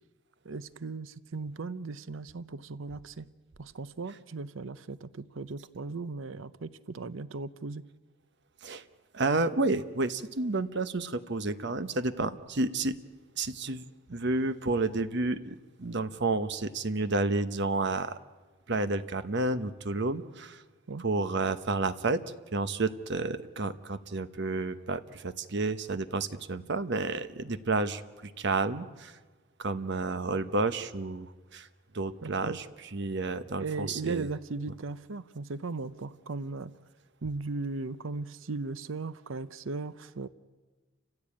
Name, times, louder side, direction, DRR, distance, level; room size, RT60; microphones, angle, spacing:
voice 1, 0.4-3.3 3.6-7.8 20.9-21.0 32.2-32.6 33.6-36.7 37.2-40.3, right 3 dB, 75° right, 15 dB, 0.7 m, -37 dB
voice 2, 9.1-13.0 13.4-13.8 14.1-18.2 18.7-20.6 21.0-22.2 22.5-28.0 28.4-29.1 29.6-31.7 31.9-32.6 32.9-34.3, right 3 dB, 60° right, 11 dB, 1.0 m, -30 dB
29.5 x 15.5 x 8.6 m, 1.3 s
head